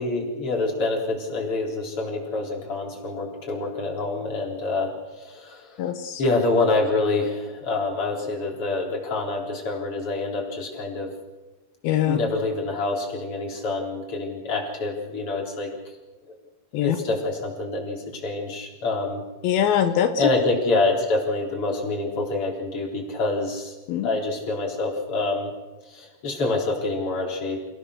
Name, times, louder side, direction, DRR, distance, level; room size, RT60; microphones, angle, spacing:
voice 1, 0.0-5.8 6.2-11.1 12.1-15.7 16.8-19.2 20.2-23.7 24.0-25.5 25.8-27.7, left 2 dB, 40° left, 0 dB, 4.6 m, -26 dB
voice 2, 5.8-6.2 11.8-12.2 16.7-17.0 19.4-20.2 23.9-24.1, left 10 dB, 85° left, 7 dB, 2.9 m, -22 dB
28.5 x 16.5 x 6.5 m, 1.1 s
omnidirectional pair, 4.2 m